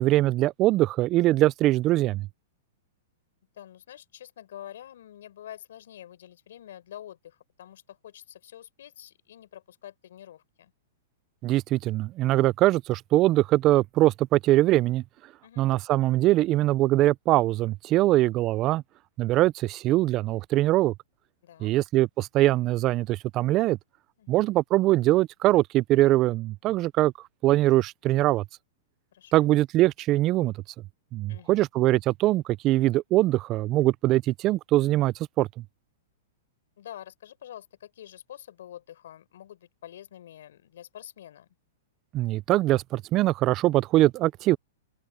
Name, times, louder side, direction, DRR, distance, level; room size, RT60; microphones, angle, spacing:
voice 1, 0.0-2.3 11.4-15.0 15.6-18.8 19.2-20.9 21.6-23.8 24.3-27.1 27.4-28.4 29.3-30.5 31.1-35.5 42.1-44.6, right 16 dB, 35° right, 0.4 m, -22 dB
voice 2, 3.6-10.7 15.4-15.7 21.4-21.7 24.2-24.4 29.1-29.5 31.3-31.6 36.8-41.5, left 11 dB, 70° left, 4.6 m, -46 dB
open air
hypercardioid pair, 125°, 0 cm